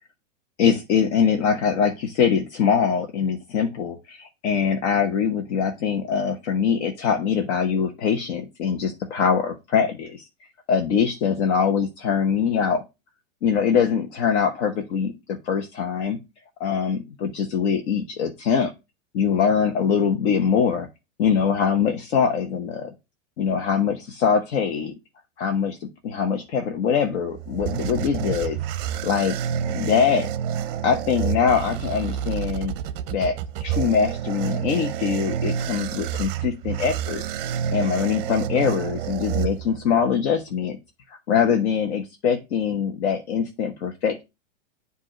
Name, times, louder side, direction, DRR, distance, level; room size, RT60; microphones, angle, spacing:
voice 1, 0.6-10.2 10.7-12.8 13.4-15.1 15.4-16.2 16.6-18.7 19.1-20.9 21.2-22.9 23.4-24.9 25.4-25.8 26.0-28.6 28.9-29.4 29.7-30.3 30.8-32.7 33.1-33.4 33.6-37.2 37.7-40.8 41.3-44.2, left 6 dB, 60° left, 3 dB, 1.0 m, -23 dB
sound 1, 27.2-40.0, right 9 dB, 45° right, 0.6 m, -29 dB
7.7 x 2.7 x 4.9 m, 0.25 s
supercardioid pair, 150°, 38 cm